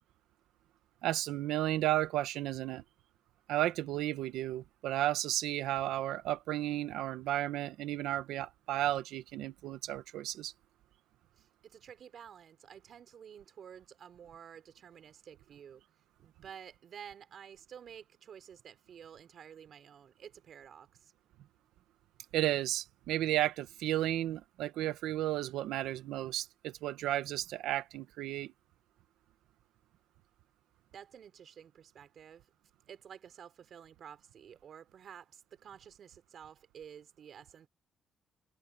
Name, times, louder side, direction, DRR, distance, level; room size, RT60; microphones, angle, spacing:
voice 1, 1.0-2.8 3.5-10.5 22.3-28.5, right 14 dB, 90° right, 1.5 m, -33 dB
voice 2, 11.4-15.8 16.2-21.1 30.9-32.5 32.9-37.7, right 8 dB, 60° right, 4.4 m, -52 dB
cardioid pair, 90°, 0 cm